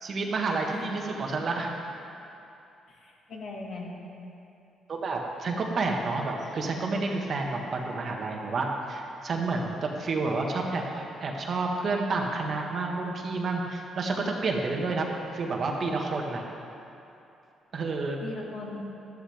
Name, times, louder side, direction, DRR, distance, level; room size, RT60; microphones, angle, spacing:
voice 1, 0.0-1.7 4.9-15.1 15.3-16.4 17.7-18.2, right 3 dB, 50° right, 1 dB, 1.6 m, -30 dB
voice 2, 1.2-1.6 2.9-3.9 18.2-18.9, left 2 dB, 60° left, -1 dB, 2.1 m, -40 dB
13.0 x 12.5 x 3.6 m, 2.8 s
cardioid pair, 90°, 0 cm